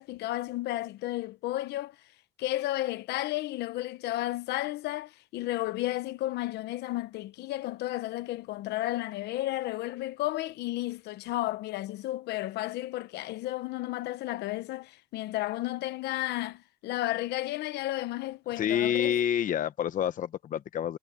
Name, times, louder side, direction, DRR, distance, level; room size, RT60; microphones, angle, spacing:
voice 1, 0.0-2.0 2.4-19.1, left 16 dB, 80° left, 1.1 m, -33 dB
voice 2, 18.6-21.0, left 9 dB, 50° left, 0.9 m, -28 dB
cardioid pair, 110°, 17 cm